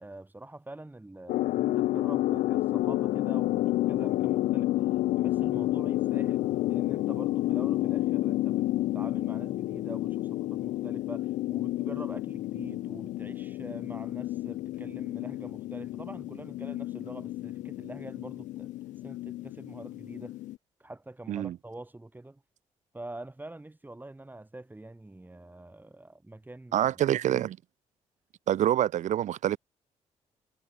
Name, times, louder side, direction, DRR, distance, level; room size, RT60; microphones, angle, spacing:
voice 1, 0.0-4.7 5.1-8.7 8.9-18.7 19.0-20.4 20.8-22.4 22.9-27.0, right 2 dB, 15° right, 4.6 m, -45 dB
sound 1, 1.3-20.6, left 16 dB, 85° left, 0.5 m, -30 dB
voice 2, 26.7-27.6 28.5-29.6, right 11 dB, 75° right, 1.6 m, -26 dB
cardioid pair, 70°, 13 cm